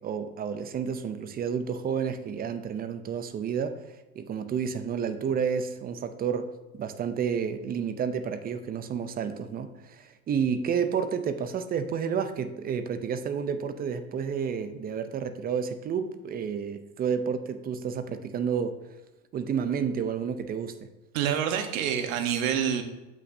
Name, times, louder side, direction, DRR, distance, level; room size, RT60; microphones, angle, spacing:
voice 1, 0.0-18.8 19.3-20.9, right 7 dB, 20° right, 10 dB, 0.4 m, -30 dB
voice 2, 21.1-22.8, right 9 dB, 70° right, 7 dB, 1.1 m, -27 dB
7.8 x 5.9 x 2.6 m, 1.1 s
supercardioid pair, 110°, 42 cm